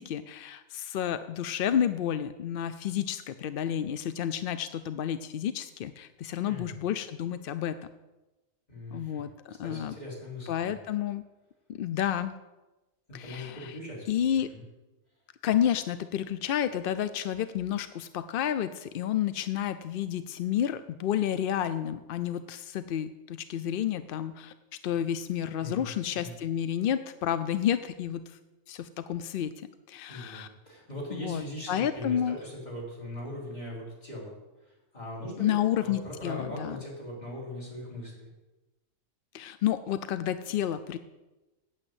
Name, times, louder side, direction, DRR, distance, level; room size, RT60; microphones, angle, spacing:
voice 1, 0.0-7.8 8.9-10.0 10.5-11.2 11.7-12.3 13.1-13.7 14.1-14.5 15.4-24.5 24.8-28.4 28.7-30.5 31.1-31.4 31.7-32.4 35.4-36.8 39.3-41.0, left 10 dB, 65° left, 12 dB, 0.5 m, -30 dB
voice 2, 6.4-6.8 8.7-9.2 9.5-10.8 13.1-14.1 14.5-14.6 15.6-15.7 25.6-26.3 30.1-35.5 35.8-38.3, left 1 dB, 30° left, -5 dB, 4.3 m, -40 dB
8.8 x 8.7 x 7.9 m, 1.1 s
omnidirectional pair, 1.4 m